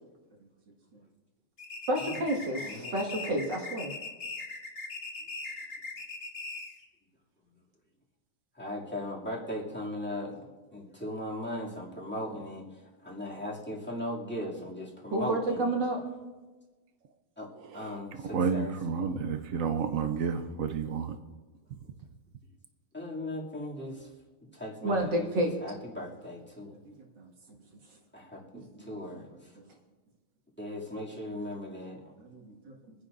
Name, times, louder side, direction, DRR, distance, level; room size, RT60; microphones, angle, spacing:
sound 1, 1.6-6.9, left 3 dB, 35° left, 1.1 m, -40 dB
voice 1, 1.9-3.9 15.1-16.0 24.8-25.5 26.9-27.3 28.5-29.2 31.5-31.6 32.2-32.8, right 1 dB, 55° right, 1 dB, 2.4 m, -31 dB
voice 2, 2.6-3.3 8.6-10.4 10.7-12.6 13.0-15.7 17.4-18.7 19.0-19.2 22.9-24.1 24.5-26.7 28.1-29.3 30.6-32.1, left 1 dB, 5° left, -5 dB, 2.3 m, -38 dB
voice 3, 17.6-21.2, right 6 dB, 85° right, 7 dB, 0.7 m, -31 dB
24.5 x 10.0 x 2.6 m, 1.2 s
omnidirectional pair, 2.4 m